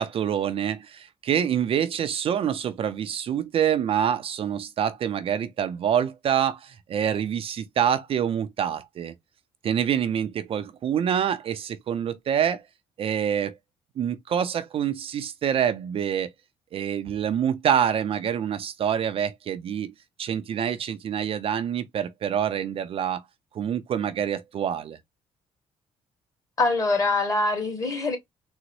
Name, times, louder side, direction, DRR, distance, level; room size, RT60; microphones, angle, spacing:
voice 1, 0.0-9.1 9.6-12.6 13.0-13.5 14.0-16.3 16.7-19.9 20.2-23.2 23.5-25.0, right 9 dB, 50° right, 0.4 m, -26 dB
voice 2, 26.6-28.2, left 3 dB, 30° left, 1.5 m, -24 dB
3.8 x 2.0 x 3.0 m
cardioid pair, 105°, 12 cm